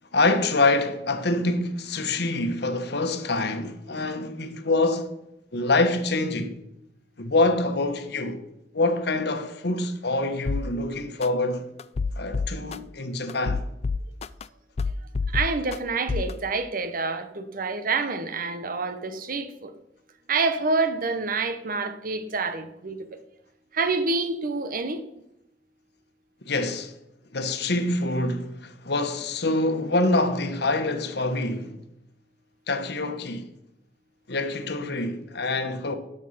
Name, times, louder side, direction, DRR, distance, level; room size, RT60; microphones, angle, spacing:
voice 1, 0.1-5.1 5.5-6.6 7.2-8.4 8.7-11.6 12.2-13.6 26.4-26.9 27.3-31.8 32.7-33.5 34.3-35.9, left 2 dB, 65° left, 1.2 m, -25 dB
sound 1, 10.5-10.6 11.2-11.3 11.8-12.8 13.3-14.4 14.8-15.8 16.1-16.3, left 4 dB, 35° left, 0.3 m, -27 dB
voice 2, 15.3-19.7 20.3-23.2 23.7-25.0, right 4 dB, 50° right, 1.0 m, -27 dB
11.5 x 6.5 x 5.7 m
head